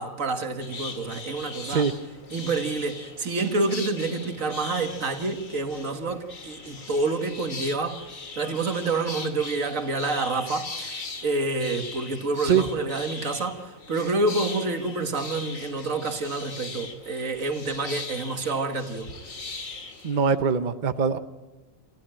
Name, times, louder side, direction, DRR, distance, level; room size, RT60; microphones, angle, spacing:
voice 1, 0.0-1.9 2.3-8.1 8.4-19.1, right 3 dB, 75° right, 2.1 m, -28 dB
sound 1, 0.6-20.4, left 3 dB, 75° left, 2.7 m, -40 dB
voice 2, 20.0-21.2, right 6 dB, 40° right, 0.9 m, -22 dB
27.5 x 15.0 x 8.9 m
omnidirectional pair, 1.4 m